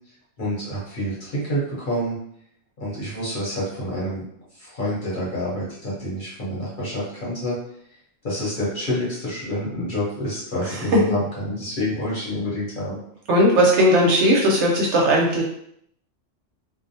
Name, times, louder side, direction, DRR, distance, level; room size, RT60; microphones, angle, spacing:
voice 1, 0.4-2.2 2.8-4.2 4.6-7.6 8.2-13.0, equal, 45° left, -7 dB, 0.9 m, -28 dB
voice 2, 13.3-15.4, equal, 65° right, -2 dB, 0.8 m, -17 dB
2.4 x 2.1 x 2.6 m, 0.71 s
omnidirectional pair, 1.4 m